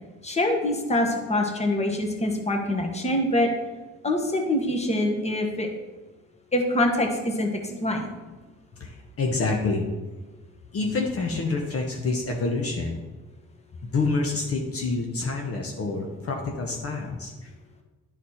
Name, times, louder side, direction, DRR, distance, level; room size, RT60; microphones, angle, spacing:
voice 1, 0.2-3.5 4.0-5.7 6.5-8.1, left 1 dB, 20° left, 3 dB, 1.4 m, -25 dB
voice 2, 8.8-9.9 10.7-13.0 13.8-17.5, left 3 dB, 50° left, 1 dB, 1.0 m, -27 dB
11.0 x 4.2 x 4.3 m, 1.2 s
cardioid pair, 90°, 30 cm